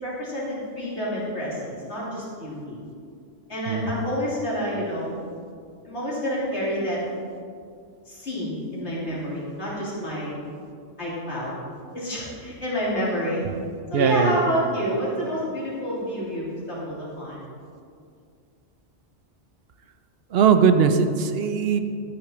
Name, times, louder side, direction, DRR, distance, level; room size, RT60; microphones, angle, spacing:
voice 1, 0.0-2.8 3.5-5.1 5.8-7.0 8.1-10.3 11.0-11.5 11.9-13.4 13.9-17.4, equal, 75° left, -7 dB, 3.2 m, -28 dB
voice 2, 13.9-14.4 20.3-21.8, right 6 dB, 65° right, 9 dB, 0.8 m, -19 dB
12.0 x 8.6 x 4.4 m, 2.3 s
omnidirectional pair, 1.2 m